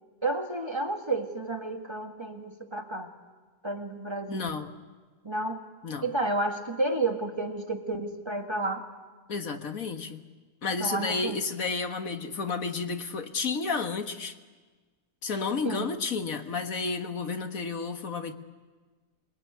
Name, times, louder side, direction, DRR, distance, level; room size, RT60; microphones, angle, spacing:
voice 1, 0.2-3.1 3.6-4.5 5.2-5.6 6.0-8.9 10.8-11.4 15.6-15.9, right 2 dB, 20° right, 4 dB, 1.8 m, -31 dB
voice 2, 4.3-4.8 5.8-6.1 9.3-10.2 10.6-14.4 15.2-18.3, left 4 dB, 75° left, 7 dB, 2.0 m, -31 dB
28.0 x 21.0 x 9.7 m, 1.3 s
omnidirectional pair, 1.5 m